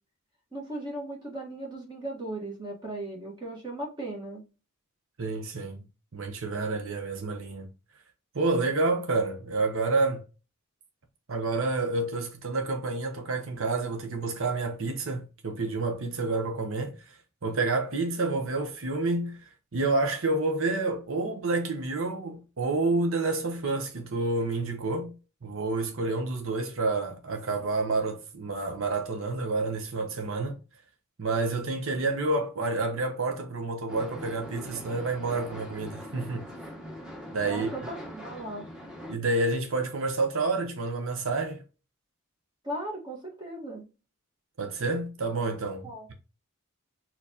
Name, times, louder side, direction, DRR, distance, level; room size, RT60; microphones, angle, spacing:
voice 1, 0.5-4.4 37.4-38.6 42.6-43.8 45.8-46.1, right 1 dB, 20° right, 1.3 m, -37 dB
voice 2, 5.2-5.8 6.1-7.7 8.3-10.2 11.3-17.0 17.4-19.4 19.7-25.1 25.4-30.6 31.2-36.5 37.3-37.7 39.1-41.6 44.6-46.1, right 3 dB, 70° right, 0.8 m, -29 dB
sound 1, 33.9-39.1, equal, 5° right, 1.1 m, -42 dB
4.5 x 3.8 x 2.8 m
head